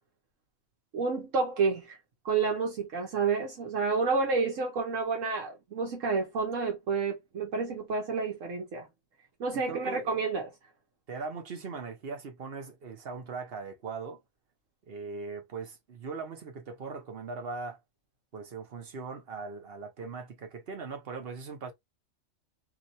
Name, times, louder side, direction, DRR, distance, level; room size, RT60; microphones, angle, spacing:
voice 1, 0.9-2.0 2.2-8.9 9.4-10.5, right 4 dB, 75° right, 1.2 m, -29 dB
voice 2, 9.5-10.1 11.1-14.2 14.9-17.8 18.3-21.7, right 4 dB, 50° right, 1.0 m, -40 dB
2.9 x 2.7 x 2.6 m
omnidirectional pair, 1.3 m